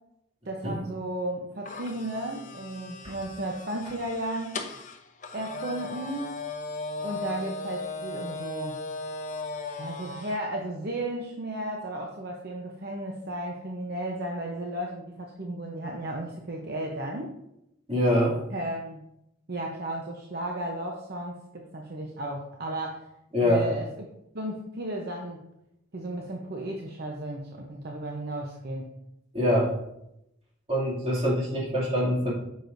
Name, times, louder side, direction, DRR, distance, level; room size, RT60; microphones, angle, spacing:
voice 1, 0.4-4.6 5.3-6.3 7.0-8.8 9.8-17.3 18.5-19.0 19.5-23.1 23.4-24.1 24.3-25.4 25.9-28.9, right 1 dB, 55° right, 0 dB, 0.9 m, -34 dB
sound 1, 1.6-10.4, left 3 dB, 40° left, 0.8 m, -37 dB
voice 2, 17.9-18.4 23.3-23.7 29.3-29.7 30.7-32.3, equal, 30° right, -5 dB, 2.6 m, -24 dB
9.0 x 6.8 x 2.7 m, 0.84 s
head